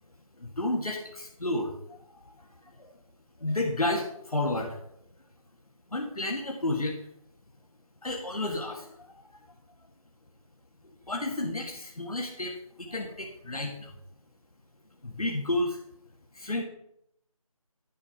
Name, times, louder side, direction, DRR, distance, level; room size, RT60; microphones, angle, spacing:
voice 1, 0.4-2.0 2.2-2.9 3.4-4.8 5.9-7.0 8.0-9.2 11.1-13.9 15.0-15.8 16.3-16.6, left 2 dB, 75° left, 0 dB, 1.8 m, -31 dB
11.0 x 5.5 x 5.6 m, 0.73 s
figure-of-eight pair, 180°, 19 cm